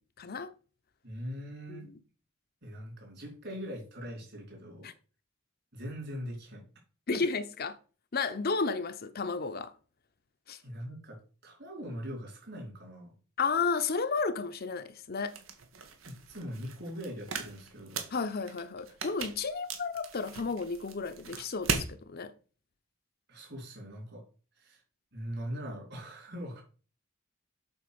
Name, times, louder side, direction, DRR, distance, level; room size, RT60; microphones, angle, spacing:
voice 1, 0.2-0.5 1.7-2.0 4.8-4.9 7.1-7.8 8.1-9.7 10.5-10.6 13.4-15.4 18.1-22.3, left 4 dB, 50° left, 0.8 m, -32 dB
voice 2, 1.0-1.9 2.6-4.9 5.7-6.6 7.1-7.2 10.6-13.1 16.1-18.1 23.3-24.3 24.6-24.8 25.1-26.6, equal, 55° right, 4.3 m, -41 dB
sound 1, 15.3-21.9, right 5 dB, 90° right, 1.7 m, -39 dB
8.0 x 4.5 x 6.9 m
head